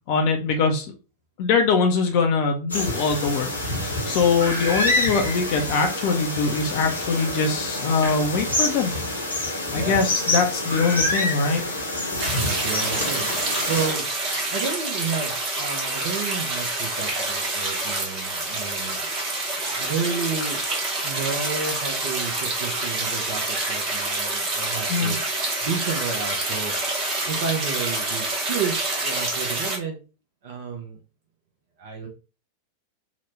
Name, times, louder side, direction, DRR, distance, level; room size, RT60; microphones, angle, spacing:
voice 1, 0.1-0.9 1.4-3.5 3.8-8.9 9.7-11.6 14.3-14.5 24.9-25.1, left 4 dB, 45° left, 3 dB, 0.4 m, -22 dB
sound 1, 2.7-13.9, left 1 dB, 80° left, 0.9 m, -27 dB
voice 2, 9.7-10.0 12.4-13.3 13.6-19.0 19.5-20.6 21.0-25.2 25.6-26.7 27.2-30.0 30.4-31.0 31.8-32.1, right 5 dB, 55° right, 1 dB, 0.6 m, -31 dB
sound 2, 12.2-29.8, right 2 dB, 35° right, 1.1 m, -27 dB
2.9 x 2.2 x 3.1 m, 0.33 s
figure-of-eight pair, 90°, 0 cm